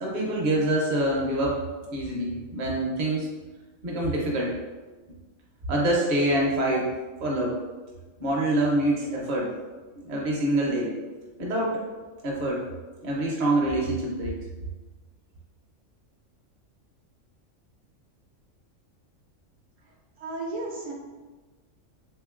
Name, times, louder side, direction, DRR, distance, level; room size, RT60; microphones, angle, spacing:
voice 1, 0.0-1.6 1.9-3.3 3.8-4.5 5.7-6.9 7.2-7.6 8.2-9.5 10.0-10.9 11.4-11.8 12.2-12.6 13.0-14.4, right 1 dB, 45° right, -3 dB, 0.7 m, -25 dB
voice 2, 20.2-20.9, right 2 dB, 70° right, -2 dB, 0.9 m, -33 dB
3.7 x 2.9 x 2.4 m, 1.3 s
omnidirectional pair, 1.4 m